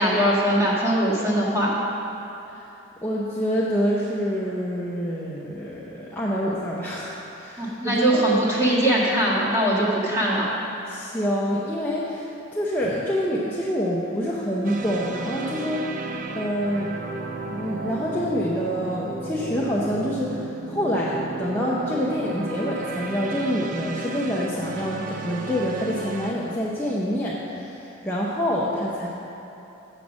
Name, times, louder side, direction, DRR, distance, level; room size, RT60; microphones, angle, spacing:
voice 1, 0.0-1.7 7.6-10.5, right 1 dB, 15° right, -7 dB, 1.8 m, -21 dB
voice 2, 3.0-8.2 10.9-16.0 16.3-17.0 17.5-29.1, equal, 10° left, -6 dB, 0.6 m, -27 dB
sound 1, 14.6-26.3, right 3 dB, 40° right, 0.5 m, -33 dB
7.7 x 7.1 x 6.2 m, 3.0 s
head